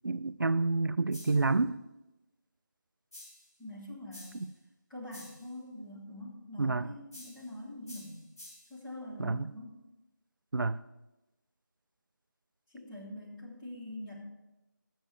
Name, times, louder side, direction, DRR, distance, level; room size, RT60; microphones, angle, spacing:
voice 1, 0.0-1.8 4.4-4.5 6.6-6.9 9.2-9.5 10.5-10.8, right 3 dB, 75° right, 15 dB, 0.4 m, -29 dB
sound 1, 1.1-1.5 3.1-3.5 4.1-4.5 5.1-5.5 7.1-7.5 7.9-8.8, left 1 dB, 50° left, 3.6 m, -51 dB
voice 2, 3.6-4.5 4.9-8.3 8.7-9.8 12.7-14.2, left 1 dB, 5° left, -10 dB, 1.0 m, -44 dB
14.5 x 6.2 x 3.3 m, 0.99 s
figure-of-eight pair, 165°, 11 cm